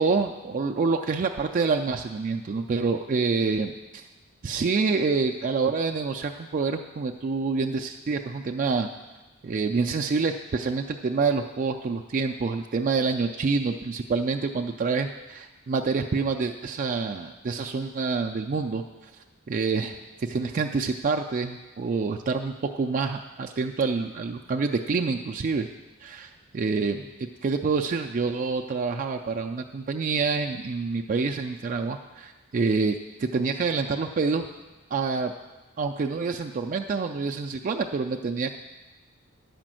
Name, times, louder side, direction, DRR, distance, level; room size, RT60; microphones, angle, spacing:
voice 1, 0.0-4.1 4.4-8.9 9.4-18.8 19.5-25.7 26.0-27.0 27.4-34.5 34.9-35.3 35.8-38.5, right 4 dB, 40° right, 3 dB, 0.4 m, -27 dB
10.5 x 5.1 x 7.5 m, 1.2 s
head